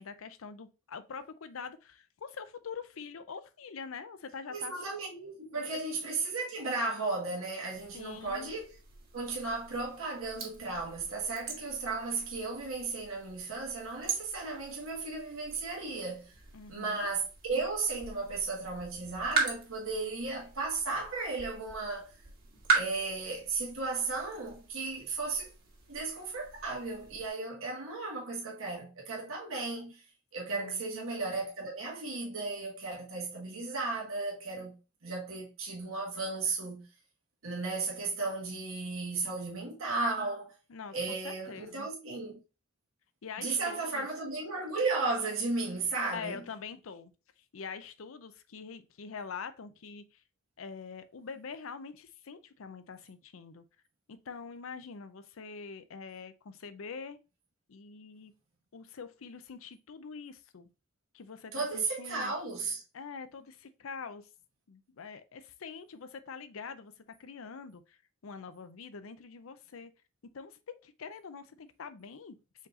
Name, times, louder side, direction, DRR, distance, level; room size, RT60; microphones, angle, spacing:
voice 1, 0.0-4.7 7.9-8.5 16.5-17.0 30.5-30.8 40.7-41.9 43.2-44.1 46.1-47.1 47.5-50.2 50.6-53.6 54.1-57.2 57.7-58.3 58.7-60.7 61.1-62.3 62.9-64.3 64.7-66.9 67.2-69.9 70.3-72.4, left 5 dB, 80° left, 0.5 m, -44 dB
voice 2, 4.5-8.7 9.1-16.3 16.7-22.1 22.7-25.5 25.9-30.0 30.3-36.9 37.4-40.5 40.9-42.4 43.4-46.4 61.5-62.8, right 3 dB, 85° right, 1.6 m, -35 dB
sound 1, 7.7-27.3, right 5 dB, 50° right, 1.6 m, -40 dB
5.2 x 4.0 x 2.5 m
head